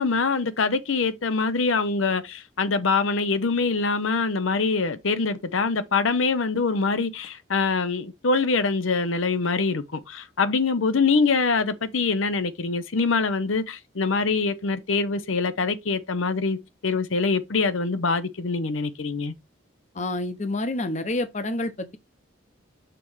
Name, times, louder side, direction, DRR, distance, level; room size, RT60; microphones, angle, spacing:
voice 1, 0.0-19.3, left 4 dB, 85° left, 0.8 m, -24 dB
voice 2, 19.9-22.0, left 2 dB, 35° left, 0.8 m, -28 dB
6.8 x 3.2 x 5.5 m
head